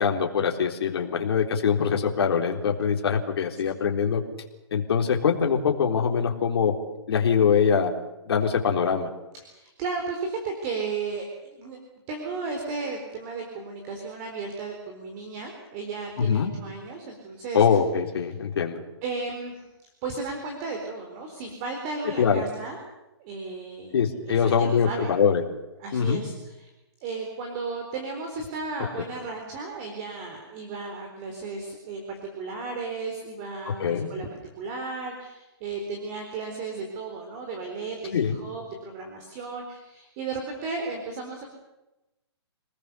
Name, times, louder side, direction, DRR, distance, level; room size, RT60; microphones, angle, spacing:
voice 1, 0.0-4.2 4.7-6.7 7.1-7.9 8.3-9.1 16.2-16.5 17.5-18.8 22.2-22.4 23.9-25.4 25.9-26.2 33.7-34.1 38.1-38.4, left 7 dB, 65° left, 1 dB, 3.6 m, -23 dB
voice 2, 9.4-11.8 12.1-17.7 19.0-19.7 20.0-22.8 23.2-23.9 24.3-25.1 25.8-26.7 27.0-34.3 34.6-41.4, right 4 dB, 30° right, 3 dB, 4.1 m, -34 dB
28.0 x 20.0 x 6.9 m, 0.99 s
hypercardioid pair, 155°, 14 cm